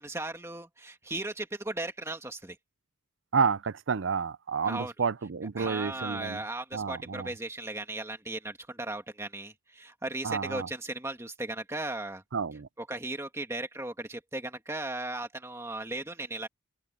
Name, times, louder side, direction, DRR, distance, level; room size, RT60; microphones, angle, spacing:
voice 1, 0.0-2.6 4.6-4.9 5.6-12.2 12.8-16.5, right 2 dB, 15° right, 2.1 m, -36 dB
voice 2, 3.3-6.4 6.7-7.3 10.2-10.7 12.3-12.7, right 5 dB, 70° right, 0.5 m, -30 dB
head